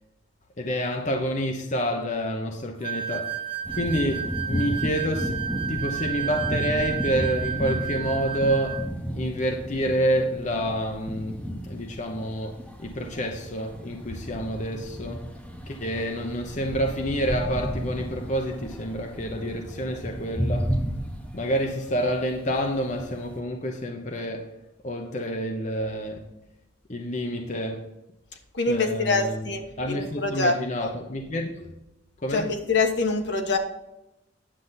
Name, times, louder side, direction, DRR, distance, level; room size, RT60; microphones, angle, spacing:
voice 1, 0.6-3.4 3.7-5.3 5.7-15.3 15.7-20.7 21.3-24.5 24.8-26.3 26.9-27.9 28.7-29.5 29.8-31.7 32.2-32.5, equal, 40° left, 0.9 m, -28 dB
sound 1, 2.8-8.9, right 8 dB, 30° right, 0.8 m, -32 dB
sound 2, 3.6-23.4, equal, 5° left, 1.1 m, -33 dB
voice 2, 28.5-30.9 32.3-33.6, left 3 dB, 70° left, 1.4 m, -25 dB
10.0 x 8.2 x 4.1 m
head